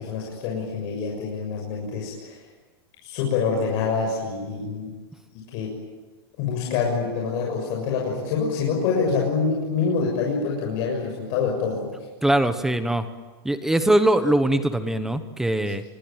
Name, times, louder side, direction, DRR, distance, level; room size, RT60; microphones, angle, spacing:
voice 1, 0.0-2.4 3.0-4.9 5.5-5.7 6.4-11.9, left 5 dB, 45° left, -1 dB, 6.9 m, -26 dB
voice 2, 12.2-13.0 13.4-15.8, right 1 dB, 5° right, 10 dB, 1.1 m, -21 dB
27.0 x 23.0 x 9.2 m, 1.3 s
supercardioid pair, 165°, 13 cm